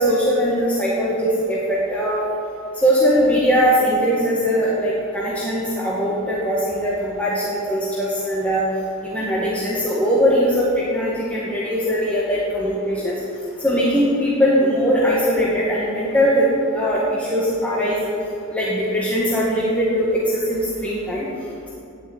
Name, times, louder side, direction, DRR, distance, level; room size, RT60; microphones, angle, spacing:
voice 1, 0.0-2.2 2.8-8.6 9.0-13.2 13.6-16.5 16.7-18.0 18.5-21.3, equal, 5° left, -7 dB, 1.6 m, -20 dB
10.5 x 8.5 x 8.0 m, 2.7 s
head